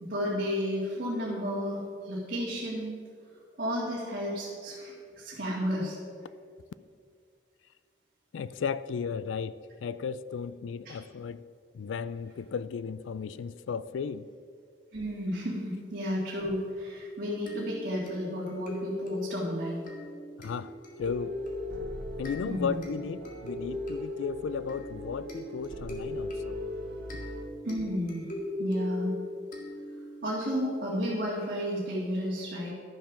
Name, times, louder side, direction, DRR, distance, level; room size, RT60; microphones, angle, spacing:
voice 1, 0.0-3.0 3.6-6.0 10.9-11.0 14.9-19.8 22.5-22.8 27.6-28.3 28.6-29.1 30.2-32.7, equal, 50° right, -6 dB, 1.8 m, -32 dB
voice 2, 8.3-11.4 11.7-14.3 20.4-20.7 21.0-21.4 22.2-26.6, left 6 dB, 90° left, 16 dB, 0.3 m, -35 dB
sound 1, 17.5-30.2, left 2 dB, 45° left, 1.9 m, -39 dB
sound 2, 21.0-27.5, right 1 dB, 70° right, 1.0 m, -43 dB
11.5 x 7.3 x 6.0 m, 2.2 s
head